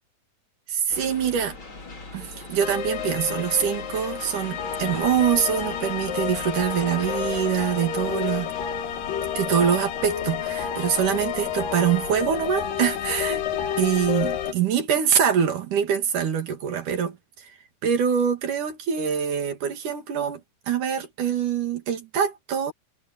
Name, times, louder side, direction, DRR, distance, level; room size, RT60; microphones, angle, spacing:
voice 1, 0.7-1.6 2.1-8.5 9.4-13.5 13.8-17.5 17.8-20.4 20.7-22.7, right 8 dB, 65° right, 3.8 m, -24 dB
sound 1, 0.9-10.1, left 3 dB, 35° left, 5.4 m, -41 dB
sound 2, 2.6-14.5, left 8 dB, 80° left, 3.2 m, -30 dB
omnidirectional pair, 3.9 m